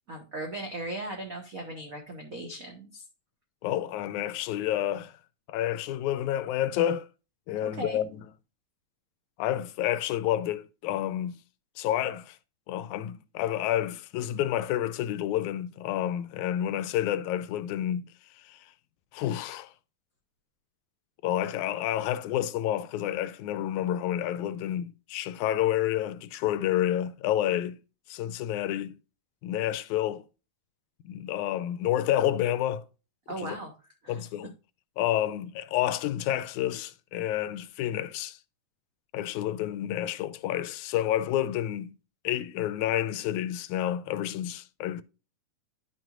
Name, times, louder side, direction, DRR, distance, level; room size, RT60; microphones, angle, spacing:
voice 1, 0.1-3.0 7.6-8.0 33.3-33.7 34.0-34.2, right 2 dB, 45° right, 1.2 m, -38 dB
voice 2, 3.6-5.1 5.5-7.1 7.5-8.2 9.4-11.4 11.8-12.4 12.7-18.0 18.5-18.6 19.1-19.7 21.2-27.8 28.1-29.0 29.4-30.2 31.1-32.8 33.4-33.6 34.1-34.5 35.0-38.4 39.1-42.0 42.2-45.0, left 12 dB, 85° left, 2.0 m, -29 dB
11.0 x 6.1 x 2.5 m
omnidirectional pair, 3.4 m